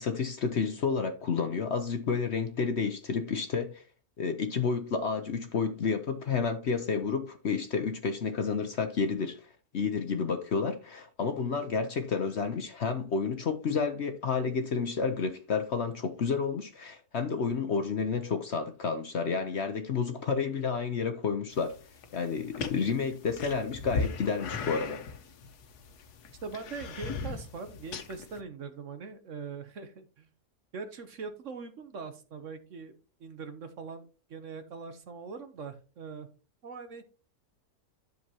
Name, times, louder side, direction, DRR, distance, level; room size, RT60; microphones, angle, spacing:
voice 1, 0.0-3.8 4.2-9.5 9.7-21.8 22.1-25.0, left 5 dB, 55° left, 0.9 m, -30 dB
sound 1, 21.5-28.4, left 4 dB, 80° left, 1.5 m, -38 dB
voice 2, 26.4-30.3 30.7-32.9 33.2-34.0 34.3-36.3 36.6-37.0, right 5 dB, 55° right, 1.1 m, -42 dB
11.0 x 6.7 x 2.9 m
omnidirectional pair, 1.7 m